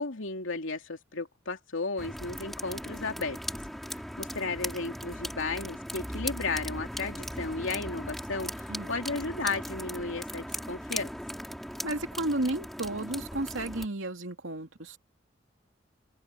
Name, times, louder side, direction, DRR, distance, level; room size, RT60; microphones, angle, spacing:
voice 1, 0.0-3.4 3.9-11.1, left 3 dB, 90° left, 2.8 m, -34 dB
sound 1, 2.0-13.9, equal, ahead, 6.4 m, -38 dB
voice 2, 11.8-15.0, right 2 dB, 90° right, 2.6 m, -33 dB
open air
head